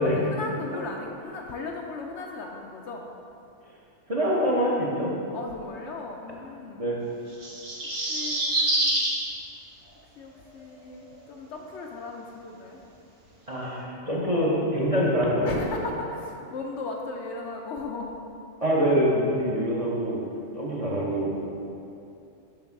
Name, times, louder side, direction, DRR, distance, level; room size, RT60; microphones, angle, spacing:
voice 1, 0.0-3.1 5.3-7.0 8.1-8.9 10.2-12.8 15.4-18.2 20.2-20.8, left 3 dB, 65° left, 1 dB, 0.8 m, -37 dB
voice 2, 4.1-5.1 6.8-7.0 13.5-15.7 18.6-20.2 20.5-21.4, equal, 30° right, -5 dB, 0.8 m, -25 dB
sound 1, 7.3-9.2 10.6-10.7, right 1 dB, 90° right, 1.8 m, -26 dB
6.8 x 3.6 x 5.8 m, 2.7 s
omnidirectional pair, 1.4 m